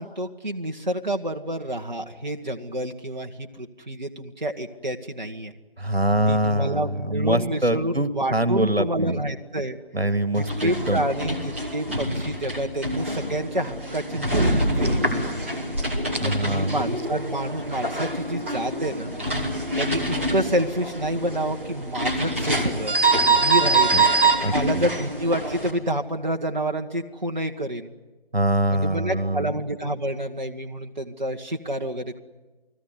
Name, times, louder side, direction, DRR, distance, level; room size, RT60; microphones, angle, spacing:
voice 1, 0.0-5.5 6.3-9.8 10.3-15.4 16.2-19.1 19.8-22.9 23.3-24.0 24.5-27.9 28.7-32.2, right 1 dB, 50° right, 3 dB, 1.6 m, -28 dB
voice 2, 5.8-9.2 9.9-11.0 16.2-16.8 23.9-24.0 24.4-24.9 28.3-29.5, right 1 dB, 80° right, 12 dB, 2.3 m, -24 dB
sound 1, 10.4-25.7, right 2 dB, 15° right, 2.8 m, -25 dB
30.0 x 20.5 x 9.6 m, 1.2 s
figure-of-eight pair, 170°, 31 cm